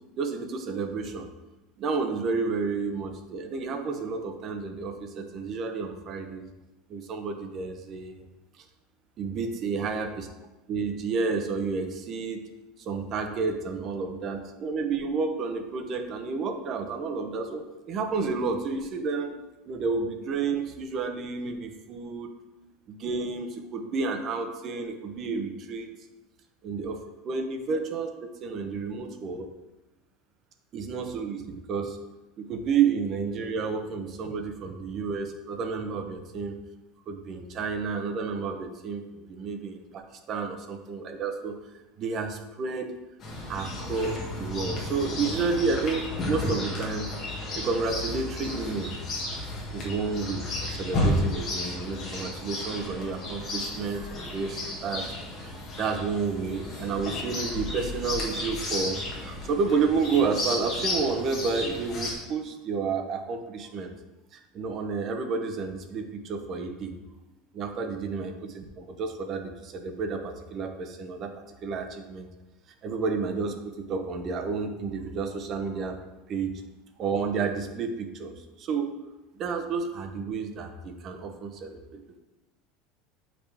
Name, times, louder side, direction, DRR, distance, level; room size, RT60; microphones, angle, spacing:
voice 1, 0.2-1.3 1.8-6.4 6.9-8.3 8.6-8.7 9.2-10.3 10.7-12.4 12.8-19.3 19.6-22.3 22.9-25.9 26.6-29.5 30.7-32.0 32.4-36.6 37.1-41.6 42.0-42.9 43.5-47.1 47.6-49.0 49.7-55.1 55.4-63.9 64.3-66.9 67.5-71.3 71.6-72.3 72.8-76.0 76.3-76.6 77.0-78.9 79.4-82.2, right 4 dB, 35° right, 5 dB, 0.8 m, -31 dB
Chirp tweet, 43.2-62.1, left 1 dB, 30° left, 1.7 m, -33 dB
8.4 x 5.0 x 3.4 m, 1.0 s
cardioid pair, 160°, 0 cm